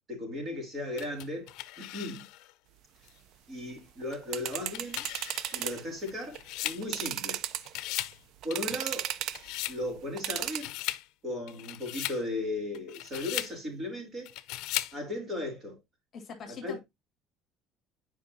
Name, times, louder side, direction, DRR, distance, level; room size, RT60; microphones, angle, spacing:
voice 1, 0.1-2.2 3.5-5.1 5.5-7.4 8.4-9.1 9.7-10.7 11.2-14.3 14.9-15.8 16.5-16.8, left 1 dB, 30° right, 3.2 m, -36 dB
sound 1, 1.0-2.5 3.1-3.2 4.4-7.4 7.6-8.2 8.5-9.8 10.3-11.1 11.5-12.2 12.7-13.6 14.3-15.0, left 17 dB, 70° left, 0.5 m, -38 dB
sound 2, 4.0-5.8 6.2-6.4 6.8-7.9 8.4-9.5 10.2-10.6, right 11 dB, 55° right, 0.5 m, -35 dB
voice 2, 16.1-16.8, left 6 dB, 35° left, 1.7 m, -43 dB
9.3 x 5.0 x 2.7 m
cardioid pair, 160°, 0 cm